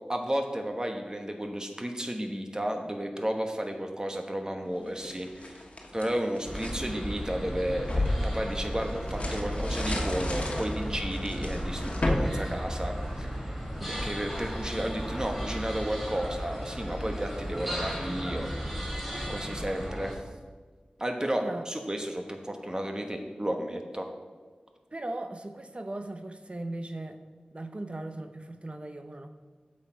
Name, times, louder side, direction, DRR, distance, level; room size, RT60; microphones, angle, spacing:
voice 1, 0.1-5.6 5.9-13.5 13.9-18.5 19.3-20.2 21.0-24.1, equal, 25° right, 4 dB, 1.0 m, -33 dB
sound 1, 4.8-6.8 7.3-13.4, left 1 dB, 45° left, 1.3 m, -33 dB
sound 2, 6.4-20.1, equal, 5° right, 2.5 m, -34 dB
voice 2, 13.8-14.1 21.2-21.7 24.9-27.2 27.5-29.3, right 2 dB, 40° right, 8 dB, 0.6 m, -38 dB
8.0 x 6.3 x 4.5 m, 1.4 s
wide cardioid pair, 50°, 3 cm